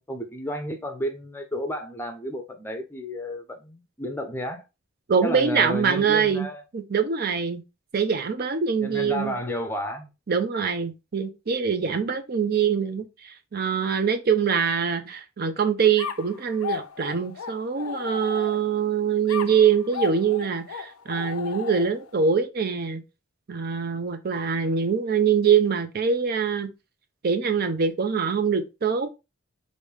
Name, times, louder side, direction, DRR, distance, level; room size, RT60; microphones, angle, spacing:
voice 1, 0.0-4.6 5.2-6.6 8.8-10.1, equal, 10° left, 0.6 m, -32 dB
voice 2, 5.1-6.5 6.7-7.6 7.9-9.3 10.3-23.0 23.5-26.7 27.2-29.1, right 6 dB, 45° right, 0.5 m, -24 dB
sound 1, 16.0-18.8 19.3-22.2, left 6 dB, 85° left, 0.5 m, -35 dB
4.9 x 2.6 x 3.3 m
head